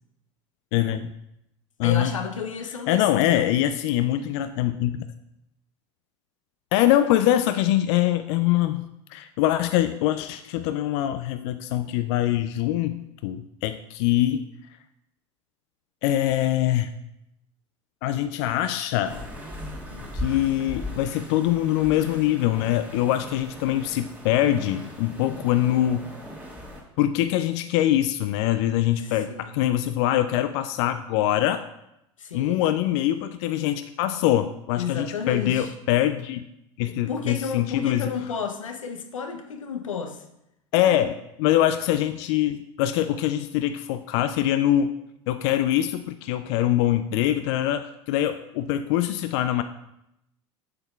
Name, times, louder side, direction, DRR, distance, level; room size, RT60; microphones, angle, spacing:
voice 1, 0.7-1.1 1.8-2.1 2.9-5.1 6.7-14.4 16.0-16.9 18.0-19.2 20.1-26.1 27.0-31.6 32.3-36.4 36.8-38.1 40.7-45.0 45.3-49.6, left 12 dB, 60° left, 10 dB, 0.4 m, -23 dB
voice 2, 1.8-3.5 19.9-20.1 29.0-29.5 32.2-32.6 34.8-35.7 37.1-40.2, left 6 dB, 90° left, 6 dB, 0.7 m, -32 dB
sound 1, 19.0-26.8, left 1 dB, 10° right, 1.6 m, -38 dB
7.9 x 7.0 x 2.4 m, 0.83 s
hypercardioid pair, 85°, 16 cm